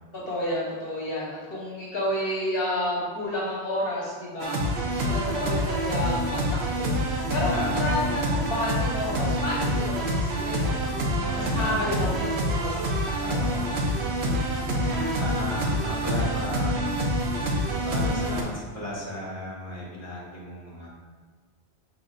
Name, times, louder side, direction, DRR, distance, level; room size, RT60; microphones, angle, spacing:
voice 1, 0.1-4.6 4.9-6.4 6.7-7.0 7.3-10.8 11.3-12.8 13.3-13.4 14.8-15.2, left 1 dB, 60° left, -5 dB, 1.1 m, -30 dB
sound 1, 4.4-18.4, equal, 75° right, 1.0 m, -27 dB
voice 2, 7.5-8.2 11.1-12.0 13.2-14.0 14.7-17.0 17.8-20.9, left 1 dB, 15° left, -6 dB, 1.2 m, -35 dB
5.1 x 4.1 x 2.4 m, 1.5 s
omnidirectional pair, 1.1 m